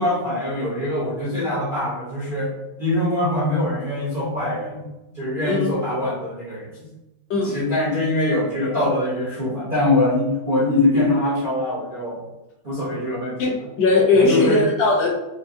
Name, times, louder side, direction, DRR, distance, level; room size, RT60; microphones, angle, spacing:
voice 1, 0.0-2.5 2.8-4.8 5.1-6.7 7.3-12.2 12.6-13.7 14.1-14.6, left 2 dB, 40° right, -8 dB, 0.8 m, -23 dB
voice 2, 13.4-15.1, left 3 dB, 75° left, -3 dB, 1.7 m, -18 dB
5.1 x 2.3 x 2.6 m, 0.98 s
omnidirectional pair, 2.1 m